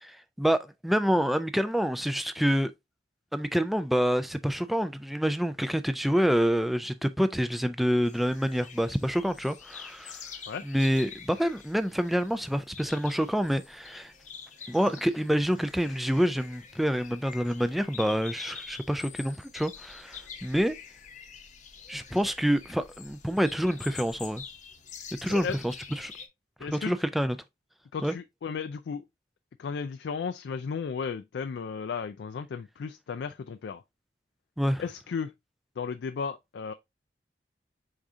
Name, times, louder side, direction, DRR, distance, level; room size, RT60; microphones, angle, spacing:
voice 1, 0.0-2.7 3.3-10.2 10.6-14.1 14.7-20.8 21.9-24.4 25.2-26.1 26.6-27.4 28.0-28.1 34.6-34.8, equal, ahead, 0.3 m, -27 dB
sound 1, 8.0-26.3, left 6 dB, 45° left, 0.7 m, -46 dB
voice 2, 26.6-26.9 27.9-29.0 29.6-33.8 34.8-35.3 35.8-36.7, left 6 dB, 75° left, 0.3 m, -34 dB
4.8 x 3.6 x 2.6 m
head